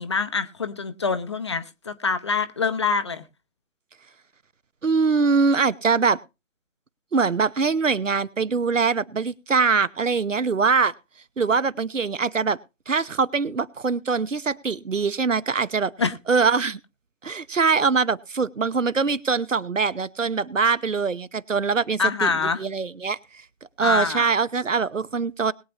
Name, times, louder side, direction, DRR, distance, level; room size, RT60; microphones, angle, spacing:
voice 1, 0.0-3.2 16.0-16.1 22.0-22.6 23.8-24.3, left 5 dB, 25° left, 0.6 m, -25 dB
voice 2, 4.8-6.2 7.1-10.9 11.4-12.6 12.9-15.9 16.3-16.8 17.2-22.3 22.6-23.2 23.8-25.5, right 5 dB, 85° right, 0.9 m, -23 dB
21.0 x 8.3 x 2.9 m
figure-of-eight pair, 145°, 37 cm